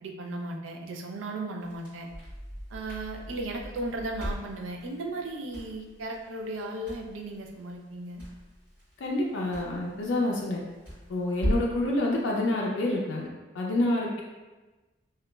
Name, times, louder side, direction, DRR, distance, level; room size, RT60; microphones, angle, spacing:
voice 1, 0.0-2.1 2.7-8.2, right 2 dB, 85° right, 2 dB, 0.4 m, -36 dB
Crackle, 1.6-11.8, equal, 10° right, 1.5 m, -38 dB
voice 2, 9.0-10.6 11.1-13.3 13.5-14.2, left 1 dB, 75° left, -2 dB, 0.4 m, -27 dB
2.9 x 2.3 x 2.2 m, 1.2 s
head